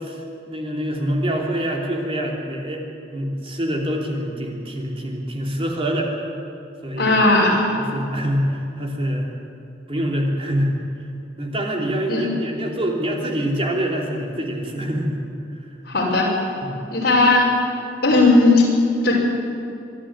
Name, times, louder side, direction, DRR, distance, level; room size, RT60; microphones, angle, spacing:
voice 1, 0.0-2.8 3.1-6.1 6.8-7.1 7.8-9.3 9.9-10.7 11.4-15.2 16.6-16.8, equal, 30° right, 0 dB, 3.1 m, -25 dB
voice 2, 7.0-7.7 12.1-12.2 15.9-16.3 16.9-17.5 18.0-18.7 19.0-19.1, left 2 dB, 55° left, -3 dB, 6.2 m, -16 dB
25.0 x 11.5 x 10.0 m, 2.6 s
head